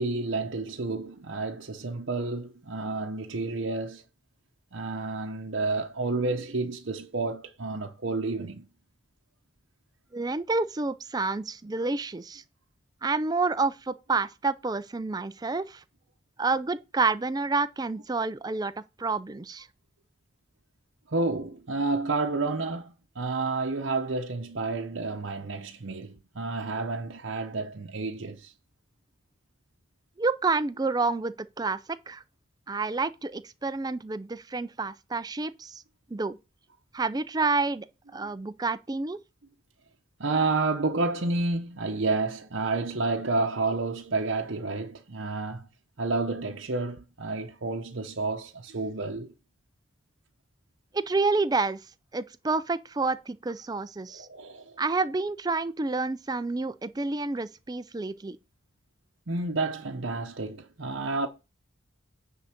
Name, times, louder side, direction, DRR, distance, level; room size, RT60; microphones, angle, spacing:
voice 1, 0.0-4.0 4.7-8.7 21.1-28.5 38.2-38.3 40.2-45.7 46.0-49.3 54.1-54.8 59.3-61.3, right 3 dB, 60° right, 0.8 m, -30 dB
voice 2, 10.1-12.4 13.0-15.8 16.4-18.7 19.0-19.7 30.2-31.8 32.1-32.2 32.7-35.8 36.1-36.4 36.9-37.9 38.1-39.2 50.9-51.8 52.1-54.3 54.8-58.4, right 3 dB, 20° right, 0.4 m, -29 dB
9.7 x 3.8 x 5.8 m
head